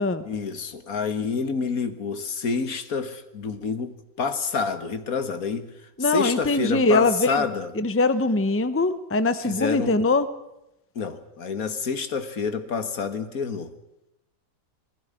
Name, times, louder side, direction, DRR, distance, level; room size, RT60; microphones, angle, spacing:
voice 1, 0.2-5.7 6.0-7.7 9.4-10.0 11.0-13.7, left 5 dB, 75° left, 10 dB, 2.0 m, -28 dB
voice 2, 6.0-7.4 7.8-10.3, left 3 dB, 10° left, 12 dB, 0.8 m, -22 dB
20.0 x 15.0 x 9.8 m, 0.87 s
omnidirectional pair, 1.5 m